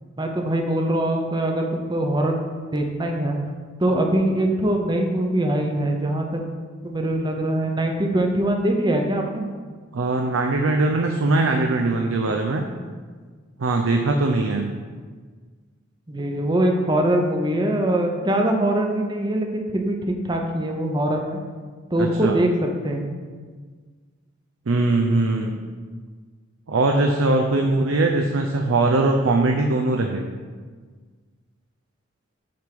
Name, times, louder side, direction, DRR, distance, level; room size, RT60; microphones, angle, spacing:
voice 1, 0.2-2.4 2.7-3.4 3.8-6.4 6.8-9.4 16.1-21.4 21.9-22.5 22.8-23.0 27.5-27.9, right 1 dB, 20° right, 2 dB, 0.7 m, -23 dB
voice 2, 9.9-12.6 13.6-14.7 22.0-22.4 24.7-25.6 26.7-30.3, right 2 dB, 85° right, 3 dB, 0.6 m, -21 dB
7.6 x 3.6 x 6.0 m, 1.5 s
head